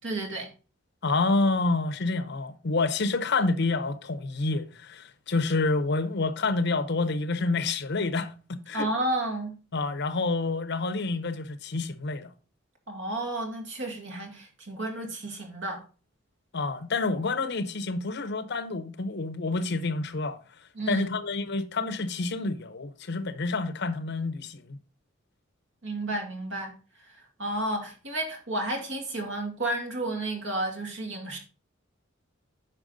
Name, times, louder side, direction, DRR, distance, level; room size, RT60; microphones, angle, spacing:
voice 1, 0.0-0.5 8.7-9.5 12.9-15.8 20.8-21.1 25.8-26.8 27.0-31.4, right 1 dB, 65° right, 2.3 m, -32 dB
voice 2, 1.0-8.9 9.7-12.3 16.5-24.8, left 3 dB, 60° left, 0.8 m, -28 dB
9.0 x 5.7 x 4.0 m
head